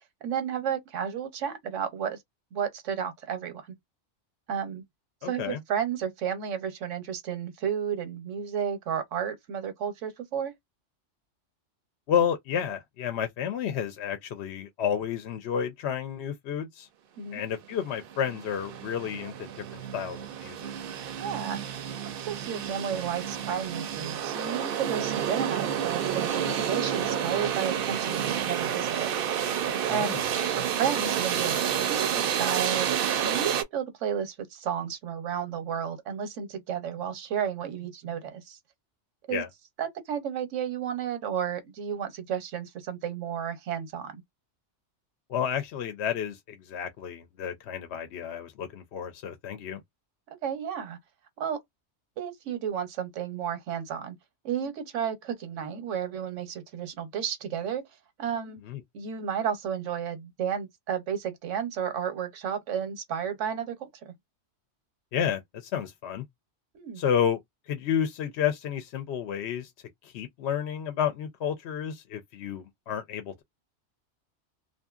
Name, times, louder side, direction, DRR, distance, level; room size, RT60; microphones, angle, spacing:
voice 1, 0.2-2.2 2.5-3.7 4.5-4.8 5.2-10.5 17.2-17.4 21.2-21.6 22.2-29.1 29.9-30.2 30.5-32.9 33.2-38.6 39.3-39.4 39.8-44.2 50.4-51.0 51.4-51.6 52.2-54.2 54.4-57.8 58.2-58.6 58.9-64.1 66.7-67.0, right 8 dB, 85° right, 1.1 m, -32 dB
voice 2, 5.2-5.6 12.1-16.9 17.3-20.7 29.9-30.3 39.3-39.5 45.3-49.8 58.6-58.8 65.1-66.3 67.0-67.4 67.7-69.7 70.0-73.3, left 8 dB, 70° left, 0.8 m, -31 dB
sound 1, 17.7-17.8 18.0-33.6, right 9 dB, 60° right, 0.6 m, -30 dB
2.6 x 2.5 x 2.3 m
omnidirectional pair, 1.2 m